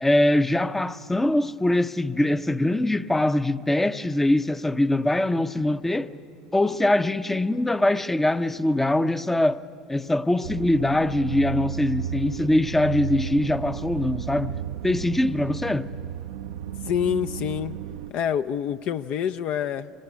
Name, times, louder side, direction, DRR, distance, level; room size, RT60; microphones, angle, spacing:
voice 1, 0.0-6.1 6.5-9.6 9.9-14.6 14.8-15.9, left 1 dB, 10° left, 0.7 m, -23 dB
sound 1, 10.4-18.1, right 9 dB, 60° right, 0.6 m, -33 dB
voice 2, 16.9-17.8 18.1-19.9, left 9 dB, 45° left, 0.6 m, -26 dB
25.0 x 22.0 x 9.6 m
figure-of-eight pair, 70°, 3 cm